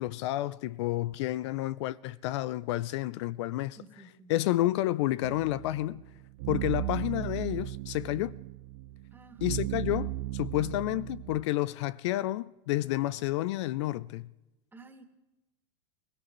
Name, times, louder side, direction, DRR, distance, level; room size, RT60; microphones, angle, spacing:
voice 1, 0.0-3.8 4.3-6.0 6.5-8.3 9.4-14.3, left 16 dB, 60° left, 0.4 m, -30 dB
voice 2, 3.8-4.3 9.1-9.4 14.7-15.1, right 3 dB, 10° right, 2.4 m, -52 dB
sound 1, 5.2-11.4, right 16 dB, 55° right, 0.4 m, -36 dB
23.0 x 18.0 x 3.1 m
hypercardioid pair, 110°, 16 cm